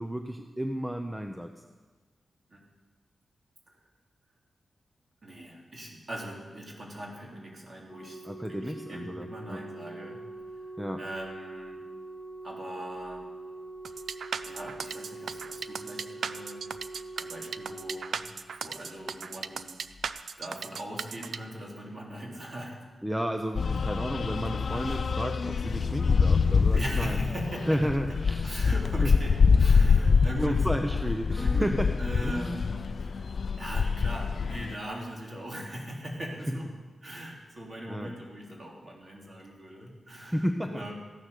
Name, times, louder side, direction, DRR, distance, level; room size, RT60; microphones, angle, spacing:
voice 1, 0.0-1.6 8.2-9.6 10.8-11.0 23.0-27.2 27.7-28.6 29.0-29.1 30.4-32.6 36.5-36.6 37.9-38.1 40.1-40.9, equal, 5° right, 5 dB, 0.7 m, -32 dB
voice 2, 5.2-10.7 11.0-11.8 12.4-13.3 14.4-16.6 17.1-18.2 18.6-22.8 26.7-27.8 28.4-30.7 31.4-33.3 33.6-36.7 37.0-40.9, right 1 dB, 35° right, -2 dB, 3.3 m, -40 dB
Organ, 7.9-18.8 19.9-20.1, right 2 dB, 30° left, 1.0 m, -43 dB
sound 1, 13.8-21.4, right 6 dB, 75° right, 0.5 m, -36 dB
sound 2, 23.6-34.8, left 5 dB, 55° left, 0.4 m, -25 dB
15.0 x 9.8 x 6.7 m, 1.4 s
wide cardioid pair, 120°, 0 cm